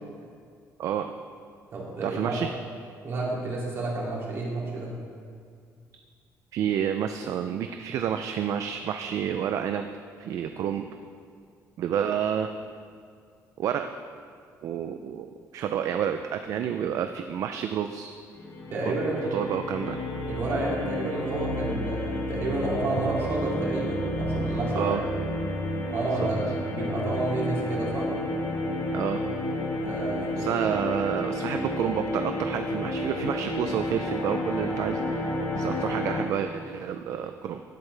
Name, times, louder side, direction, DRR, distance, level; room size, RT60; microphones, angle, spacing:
voice 1, 0.8-1.1 2.0-2.5 6.5-9.9 10.2-10.9 11.8-12.5 13.6-13.9 14.6-15.3 15.5-18.2 18.8-18.9 19.3-20.0 24.7-25.0 26.1-26.3 28.9-29.3 30.4-37.6, right 9 dB, 60° right, 7 dB, 0.4 m, -29 dB
voice 2, 1.7-2.4 3.0-4.9 18.7-19.2 20.2-25.1 25.9-28.1 29.8-30.5, right 2 dB, 40° right, -4 dB, 2.6 m, -30 dB
sound 1, 18.3-36.2, left 1 dB, 45° left, 1.4 m, -31 dB
17.0 x 8.3 x 3.4 m, 2.2 s
cardioid pair, 165°, 6 cm